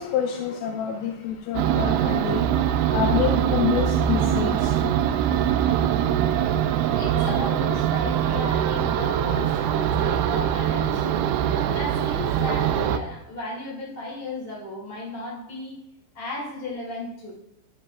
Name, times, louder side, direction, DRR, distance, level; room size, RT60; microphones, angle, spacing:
voice 1, 0.0-2.4 2.9-4.5, left 8 dB, 90° left, 2 dB, 3.1 m, -27 dB
sound 1, 1.6-13.0, right 9 dB, 85° right, 2.6 m, -23 dB
voice 2, 6.9-11.3 11.6-15.8 16.1-17.3, left 2 dB, 40° left, -5 dB, 0.8 m, -35 dB
13.5 x 5.4 x 2.4 m, 0.81 s
omnidirectional pair, 5.6 m